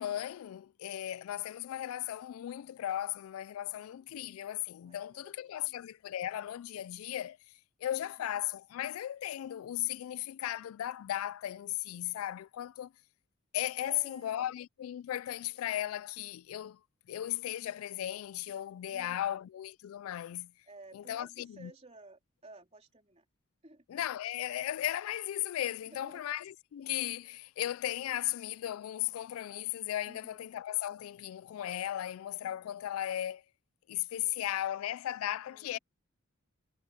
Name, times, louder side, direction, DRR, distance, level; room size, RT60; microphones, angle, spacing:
voice 1, 0.0-7.4 7.8-12.9 13.5-16.8 17.1-20.5 20.9-21.7 23.9-33.4 33.9-35.8, left 12 dB, 85° left, 0.3 m, -36 dB
voice 2, 3.6-4.1 4.8-5.7 8.2-8.4 13.8-14.5 18.9-19.5 20.7-23.2 23.6-23.8 25.8-26.2 30.0-30.5 34.2-34.4 35.4-35.8, right 2 dB, 30° right, 3.6 m, -55 dB
head